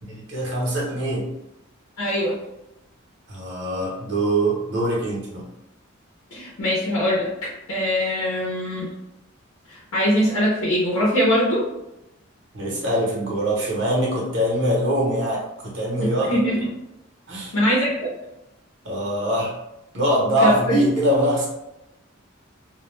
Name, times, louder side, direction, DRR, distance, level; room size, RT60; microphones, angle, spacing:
voice 1, 0.0-1.3 3.3-5.4 12.5-16.4 17.3-17.5 18.8-19.5 19.9-21.5, right 1 dB, 60° right, -4 dB, 0.9 m, -23 dB
voice 2, 2.0-2.4 6.3-8.9 9.7-11.6 16.0-16.6 17.5-18.1 20.4-20.8, equal, 90° left, -5 dB, 0.7 m, -22 dB
2.2 x 2.1 x 3.1 m, 0.89 s
head